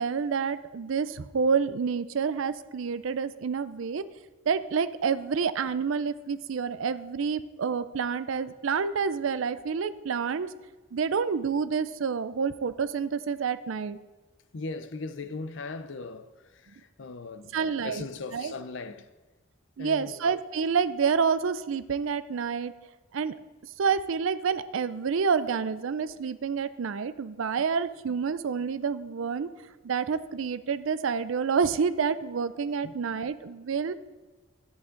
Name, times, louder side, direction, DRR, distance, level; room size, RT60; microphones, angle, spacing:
voice 1, 0.0-4.0 4.5-10.5 10.9-14.0 17.5-18.1 18.3-18.5 19.8-22.7 23.1-23.3 23.8-29.5 29.8-33.9, right 6 dB, 70° right, 0.4 m, -28 dB
voice 2, 14.5-17.6 17.8-19.1 19.8-20.2 32.8-32.9, left 3 dB, 60° left, 0.6 m, -38 dB
11.0 x 8.4 x 3.8 m
head